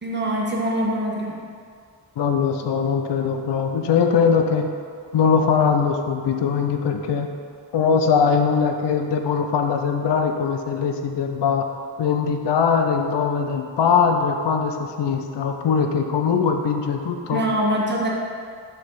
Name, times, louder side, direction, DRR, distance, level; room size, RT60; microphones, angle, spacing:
voice 1, 0.0-1.4 17.3-18.1, right 1 dB, 25° right, -3 dB, 1.3 m, -23 dB
voice 2, 2.2-4.7 5.1-7.3 7.7-11.7 12.0-17.4, left 6 dB, 65° left, 4 dB, 0.6 m, -21 dB
6.3 x 3.3 x 5.5 m, 2.2 s
cardioid pair, 70°, 46 cm